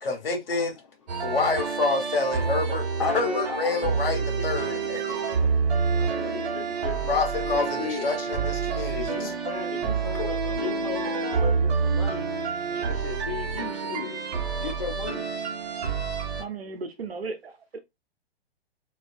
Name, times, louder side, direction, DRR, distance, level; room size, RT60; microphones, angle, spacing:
voice 1, 0.0-0.7 1.2-2.8 3.1-5.0 7.1-9.4 10.2-10.3 12.7-12.8, left 3 dB, 65° left, 1.1 m, -28 dB
sound 1, 1.1-16.4, right 5 dB, 40° right, 1.0 m, -28 dB
voice 2, 3.0-5.5 5.8-7.0 7.5-8.1 8.9-12.3 12.7-14.2 14.6-15.2, left 7 dB, 35° left, 0.4 m, -36 dB
voice 3, 16.4-17.8, right 4 dB, 75° right, 0.7 m, -36 dB
2.3 x 2.3 x 2.4 m
figure-of-eight pair, 115°, 31 cm